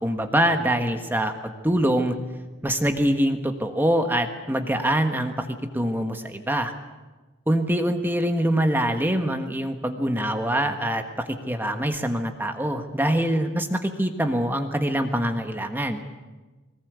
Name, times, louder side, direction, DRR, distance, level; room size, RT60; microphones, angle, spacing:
voice 1, 0.0-2.2 2.6-6.7 7.5-16.0, right 1 dB, 10° right, 6 dB, 1.4 m, -24 dB
22.0 x 20.0 x 8.2 m, 1.2 s
head